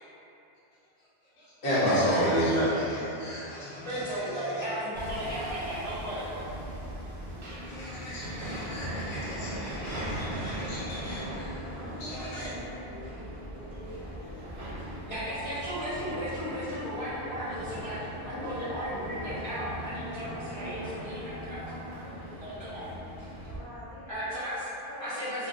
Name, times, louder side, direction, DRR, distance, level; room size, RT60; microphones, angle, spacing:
voice 1, 1.4-4.7 7.7-12.5, equal, 80° left, -9 dB, 1.1 m, -31 dB
voice 2, 3.7-6.4 15.1-21.6 22.4-22.9 24.1-24.7 25.0-25.5, equal, 35° left, -14 dB, 0.5 m, -35 dB
Hammer, 4.9-23.6, right 1 dB, 80° right, 1.0 m, -39 dB
voice 3, 11.6-14.5 15.0-15.6 20.3-22.8 23.5-24.2 24.8-25.5, equal, 60° left, -9 dB, 0.9 m, -46 dB
2.9 x 2.2 x 2.5 m, 2.9 s
omnidirectional pair, 1.1 m